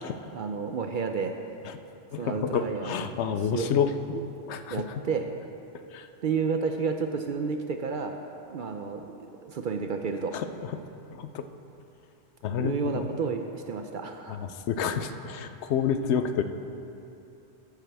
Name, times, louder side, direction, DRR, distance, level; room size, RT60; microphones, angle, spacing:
voice 1, 0.3-1.4 2.2-3.0 3.5-3.7 4.7-5.3 6.2-8.2 8.5-10.4 12.6-14.4, right 5 dB, 60° right, 5 dB, 0.6 m, -31 dB
voice 2, 2.1-4.2 4.5-4.8 5.9-6.1 10.3-10.8 11.1-11.4 12.4-13.1 14.3-16.4, left 7 dB, 80° left, 9 dB, 0.9 m, -29 dB
13.5 x 8.3 x 3.4 m, 2.8 s
omnidirectional pair, 1.2 m